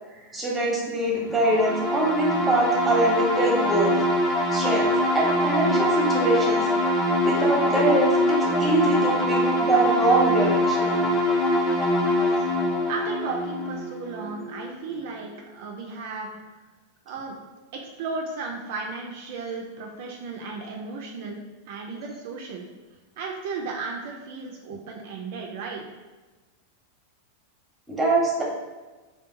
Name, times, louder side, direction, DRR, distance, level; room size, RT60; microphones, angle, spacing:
voice 1, 0.1-4.0 4.5-6.7 7.2-11.0 27.9-28.4, right 2 dB, 10° right, -3 dB, 0.8 m, -24 dB
sound 1, 1.3-14.8, left 1 dB, 20° left, 0.5 m, -23 dB
voice 2, 12.1-12.4 12.9-16.4 17.1-17.3 17.7-21.4 21.7-22.6 23.2-25.8, right 4 dB, 60° right, 0 dB, 0.3 m, -35 dB
2.7 x 2.2 x 2.5 m, 1.2 s
hypercardioid pair, 95°, 0 cm